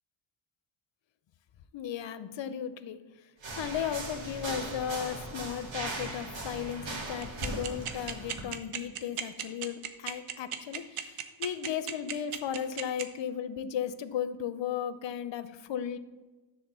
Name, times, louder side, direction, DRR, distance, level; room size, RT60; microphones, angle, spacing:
voice 1, 1.7-3.0 3.6-16.0, left 9 dB, 60° left, 13 dB, 0.7 m, -35 dB
sound 1, 3.4-8.4, right 2 dB, 65° right, 2.1 m, -39 dB
sound 2, 7.2-13.0, right 10 dB, 90° right, 0.9 m, -34 dB
10.0 x 3.8 x 6.8 m, 1.3 s
cardioid pair, 75°, 49 cm